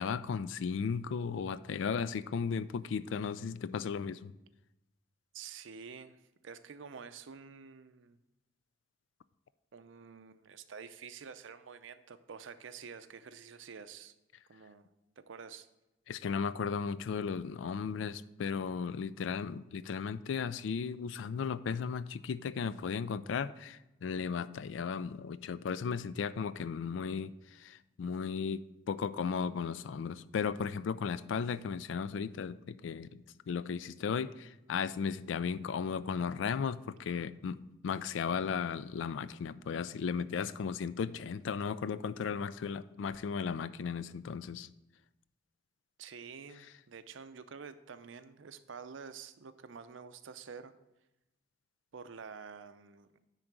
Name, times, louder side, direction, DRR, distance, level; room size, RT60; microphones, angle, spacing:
voice 1, 0.0-4.3 16.1-44.7, left 6 dB, 80° left, 16 dB, 0.3 m, -35 dB
voice 2, 5.3-6.2 6.4-8.2 9.7-14.1 14.5-14.9 15.2-15.7 46.0-50.7 51.9-53.1, right 6 dB, 85° right, 11 dB, 0.5 m, -48 dB
9.9 x 3.8 x 5.9 m, 0.93 s
head